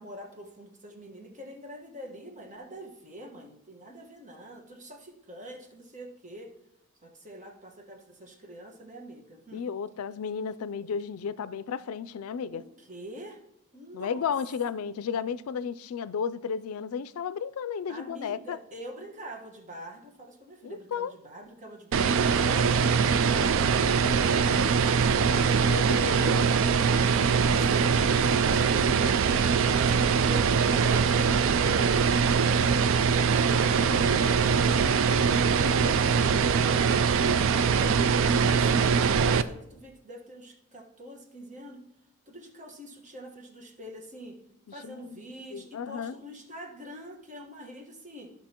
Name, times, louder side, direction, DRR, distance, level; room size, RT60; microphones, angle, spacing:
voice 1, 0.0-6.5 7.0-9.6 12.5-13.4 13.7-14.3 17.9-24.5 24.8-26.9 27.4-30.4 30.7-32.2 33.1-36.2 37.2-41.8 42.3-44.4 44.7-48.3, equal, 35° right, 1.3 m, -45 dB
voice 2, 9.5-12.6 13.9-18.6 20.6-21.1 25.7-26.3 44.8-45.2 45.5-46.2, left 6 dB, 85° left, 0.4 m, -33 dB
sound 1, 21.9-39.4, right 6 dB, 65° right, 0.4 m, -23 dB
13.5 x 5.7 x 2.9 m
head